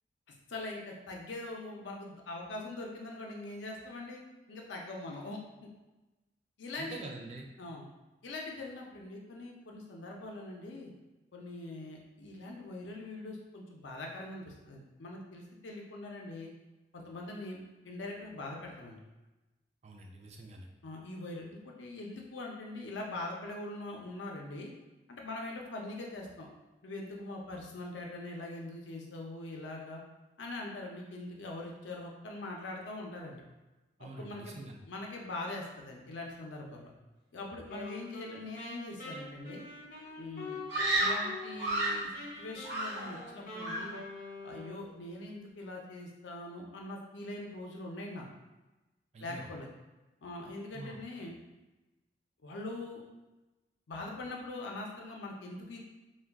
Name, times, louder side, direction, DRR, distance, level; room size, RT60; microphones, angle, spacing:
voice 1, 0.5-5.7 6.6-7.1 7.6-7.9 8.2-10.9 11.3-16.5 16.9-17.6 17.8-19.0 20.8-24.7 25.1-26.5 26.8-30.0 30.4-33.4 34.0-36.9 37.3-39.7 40.2-40.6 40.9-42.1 42.4-44.0 44.4-48.3 49.2-49.7 50.2-51.3 52.4-53.0 53.9-55.8, left 2 dB, 90° left, 0 dB, 0.5 m, -42 dB
voice 2, 6.8-7.4 19.8-20.7 34.0-34.8 49.1-49.5 50.7-51.0, right 2 dB, 35° right, 1 dB, 0.3 m, -45 dB
Wind instrument woodwind instrument, 37.7-41.8 42.1-45.0, left 2 dB, 50° left, 0.7 m, -45 dB
Screaming, 40.7-42.1 42.6-43.3 43.6-44.0, right 2 dB, 80° right, 1.0 m, -32 dB
2.3 x 2.2 x 3.4 m, 1.1 s
head